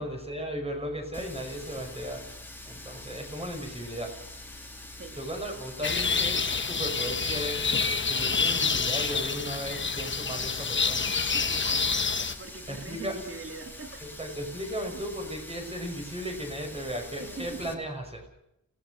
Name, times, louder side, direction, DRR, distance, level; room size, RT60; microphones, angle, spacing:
voice 1, 0.0-2.3 2.7-4.2 5.1-7.6 8.1-11.1 12.7-13.2 14.0-18.3, equal, 20° right, 2 dB, 5.5 m, -36 dB
Water tap faucet, 1.1-17.7, left 1 dB, 5° left, 2.9 m, -45 dB
sound 1, 5.8-12.3, left 5 dB, 35° left, 1.1 m, -28 dB
voice 2, 11.0-14.0 14.9-15.1 17.2-17.8, right 3 dB, 45° right, 4 dB, 2.5 m, -43 dB
29.0 x 18.0 x 6.5 m, 0.85 s
wide cardioid pair, 155°, 32 cm